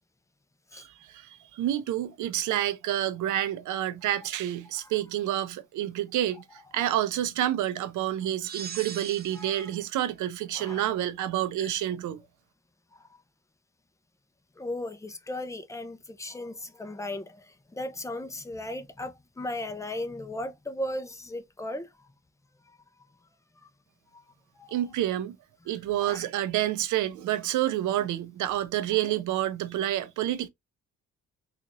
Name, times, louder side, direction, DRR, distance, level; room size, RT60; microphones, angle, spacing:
voice 1, 0.7-6.4 6.7-12.2 24.7-25.4 25.7-30.5, right 12 dB, 75° right, 0.6 m, -29 dB
sound 1, 8.4-9.8, right 8 dB, 35° right, 0.4 m, -40 dB
voice 2, 9.3-9.7 10.6-10.9 11.6-11.7 12.9-13.0 14.6-17.5 17.7-21.9 24.1-24.2 24.6-24.8 26.0-26.3 29.0-29.1, left 1 dB, 10° left, 0.7 m, -36 dB
3.8 x 2.6 x 3.0 m
cardioid pair, 90°, 30 cm